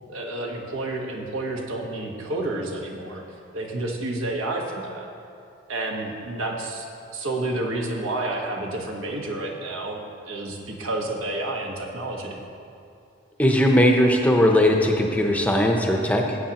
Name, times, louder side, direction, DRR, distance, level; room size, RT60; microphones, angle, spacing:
voice 1, 0.1-3.2 3.5-5.1 5.7-6.9 7.1-12.4, right 2 dB, 85° right, 1 dB, 1.3 m, -30 dB
voice 2, 13.4-16.4, left 1 dB, 5° left, 1 dB, 0.6 m, -19 dB
16.0 x 8.1 x 2.9 m, 2.5 s
head